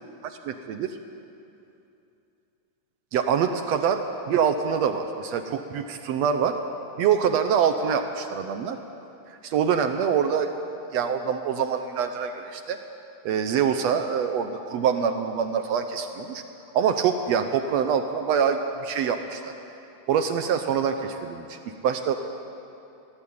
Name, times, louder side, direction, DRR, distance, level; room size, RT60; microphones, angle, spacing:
voice 1, 0.2-1.0 3.1-6.5 7.0-8.8 9.3-10.5 10.9-12.8 13.2-16.4 16.7-19.5 20.1-22.2, right 7 dB, 75° right, 7 dB, 1.6 m, -25 dB
21.0 x 15.0 x 8.7 m, 2.8 s
omnidirectional pair, 3.9 m